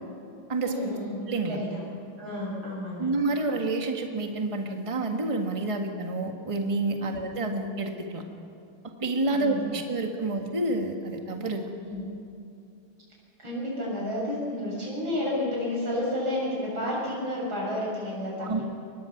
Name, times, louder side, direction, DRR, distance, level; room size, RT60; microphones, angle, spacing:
voice 1, 0.6-1.2 1.5-1.8 2.2-3.1 7.1-7.2 9.3-9.8 11.8-12.0 13.4-18.6, left 1 dB, 65° right, -5 dB, 8.4 m, -31 dB
voice 2, 1.3-1.6 3.0-8.2 9.0-11.7 18.4-18.6, right 2 dB, 15° right, 3 dB, 1.5 m, -29 dB
23.5 x 20.5 x 6.0 m, 2.7 s
omnidirectional pair, 2.4 m